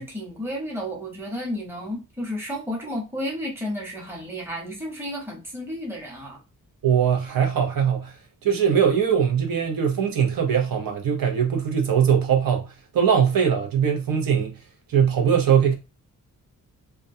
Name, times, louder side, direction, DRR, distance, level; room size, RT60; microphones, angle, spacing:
voice 1, 0.0-6.4, equal, 5° right, 0.9 m, -32 dB
voice 2, 6.8-8.2 8.4-14.5 14.9-15.8, right 7 dB, 80° right, 0.7 m, -21 dB
2.3 x 2.2 x 2.6 m
wide cardioid pair, 120°, 34 cm